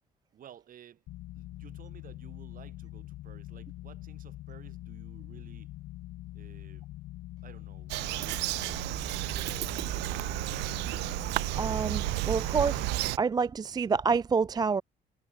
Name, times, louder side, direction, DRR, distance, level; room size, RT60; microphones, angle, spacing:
voice 1, 0.3-1.0 1.4-5.7 6.3-6.9 7.4-7.9 8.6-10.5, right 10 dB, 55° right, 8.0 m, -54 dB
sound 1, 1.1-13.1, left 16 dB, 80° left, 2.7 m, -44 dB
Bird vocalization bird call bird song, 7.9-13.2, right 22 dB, 90° right, 0.8 m, -32 dB
voice 2, 11.6-12.9 13.2-14.8, right 5 dB, 25° right, 0.5 m, -28 dB
cardioid pair, 110°, 17 cm